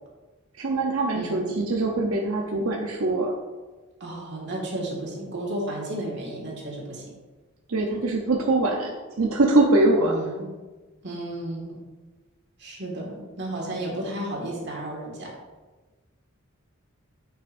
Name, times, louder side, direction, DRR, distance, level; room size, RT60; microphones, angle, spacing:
voice 1, 0.6-3.3 7.7-10.1, right 2 dB, 90° right, 0 dB, 0.7 m, -23 dB
voice 2, 1.1-1.6 4.0-7.1 10.0-10.5 11.0-11.8 12.6-15.3, right 1 dB, 55° right, -2 dB, 2.0 m, -33 dB
9.3 x 5.8 x 2.6 m, 1.3 s
head